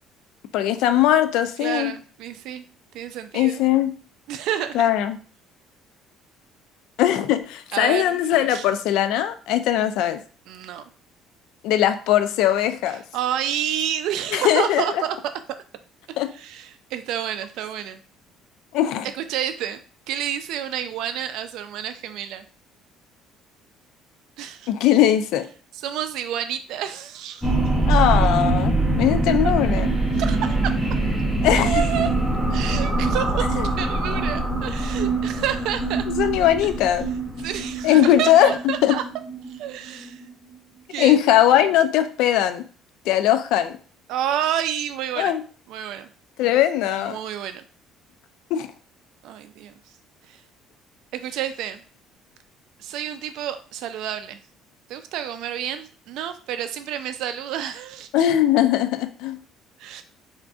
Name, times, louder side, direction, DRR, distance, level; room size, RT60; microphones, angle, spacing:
voice 1, 0.5-1.9 3.3-3.9 4.7-5.2 7.0-10.2 11.6-13.0 14.3-15.0 16.2-16.3 18.7-19.1 24.7-25.5 27.9-29.9 31.4-31.8 33.6-33.7 36.1-37.1 37.8-38.9 41.0-42.6 43.1-43.8 45.2-45.4 46.4-47.2 48.5-48.7 58.1-59.4, left 11 dB, 75° left, 10 dB, 0.3 m, -20 dB
voice 2, 1.6-2.7 2.9-3.6 4.3-4.8 7.7-8.2 8.5-8.7 10.5-10.8 13.1-15.2 16.3-18.0 19.1-19.8 20.1-22.4 24.4-24.7 25.8-27.5 30.2-30.8 31.6-32.1 32.5-33.5 33.8-36.0 37.4-39.0 39.5-40.2 40.9-41.2 44.1-45.4 45.7-46.1 47.0-47.6 49.2-49.7 50.3-50.4 51.1-51.8 52.8-54.4 54.9-58.3 59.8-60.0, right 10 dB, 65° right, 10 dB, 0.3 m, -29 dB
sound 1, 27.4-40.3, right 2 dB, 5° left, 0.6 m, -23 dB
3.7 x 2.5 x 2.3 m, 0.41 s
cardioid pair, 165°, 0 cm